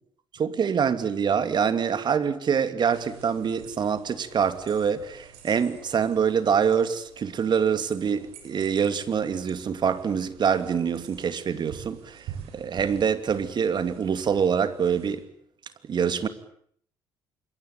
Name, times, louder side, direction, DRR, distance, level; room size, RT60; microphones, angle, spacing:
voice 1, 0.3-12.3 12.5-15.2 15.9-16.3, right 7 dB, 45° right, 2.8 m, -25 dB
sound 1, 2.8-15.2, right 7 dB, 65° right, 7.4 m, -47 dB
26.5 x 24.5 x 8.6 m
figure-of-eight pair, 50°, 11 cm